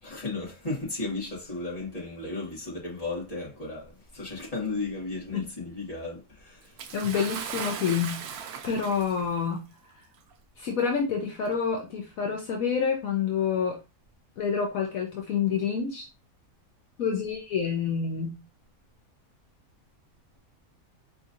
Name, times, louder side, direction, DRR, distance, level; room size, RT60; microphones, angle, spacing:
voice 1, 0.0-6.7, left 3 dB, 25° left, 1.9 m, -35 dB
Bathtub (filling or washing) / Splash splatter, 6.8-9.4 10.3-10.4 11.4-11.5, right 7 dB, 80° right, 1.1 m, -37 dB
voice 2, 6.9-8.3 8.6-9.7 10.6-13.8 14.4-16.1 17.0-18.4, left 6 dB, 70° left, 1.2 m, -28 dB
4.7 x 3.8 x 2.6 m
omnidirectional pair, 1.6 m